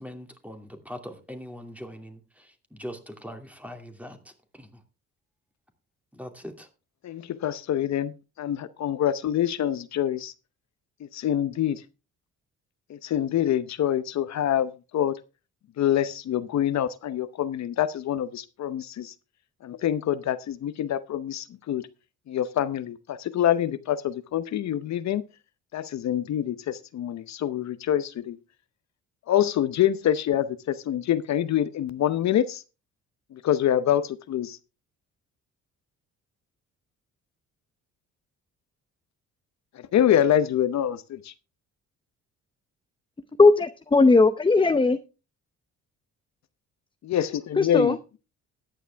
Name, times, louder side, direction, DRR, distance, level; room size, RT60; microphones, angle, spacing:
voice 1, 0.0-4.8 6.1-6.7, equal, 5° right, 2.5 m, -41 dB
voice 2, 7.0-10.3 11.0-11.8 12.9-15.2 15.8-19.1 19.6-21.9 22.3-25.2 25.7-28.4 29.3-32.6 33.3-34.6 39.7-41.3 47.0-48.2, left 10 dB, 65° left, 0.8 m, -26 dB
voice 3, 43.4-45.0 47.6-48.0, left 3 dB, 15° left, 0.7 m, -18 dB
13.5 x 10.0 x 3.4 m
cardioid pair, 90°, 30 cm